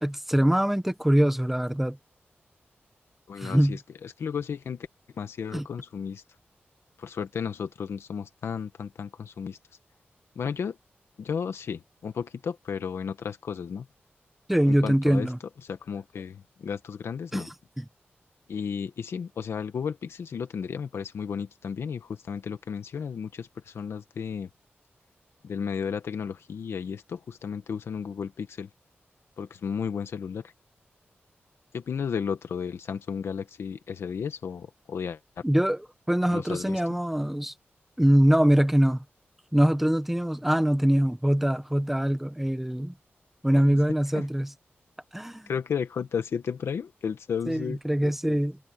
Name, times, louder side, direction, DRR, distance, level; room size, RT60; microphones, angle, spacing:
voice 1, 0.0-2.0 3.4-3.8 5.5-5.7 14.5-15.4 17.3-17.9 35.4-37.5 38.0-39.0 39.5-42.9 43.4-44.5 45.1-45.5 47.5-48.6, equal, 5° right, 1.1 m, -23 dB
voice 2, 3.3-4.9 5.2-6.2 7.0-9.6 10.4-10.8 11.2-13.9 14.7-15.3 15.7-17.5 18.5-24.5 25.4-28.7 29.4-30.5 31.7-35.2 36.3-36.8 43.5-43.8 44.1-44.2 45.5-48.4, left 6 dB, 85° left, 1.8 m, -33 dB
wide cardioid pair, 135°, 4 cm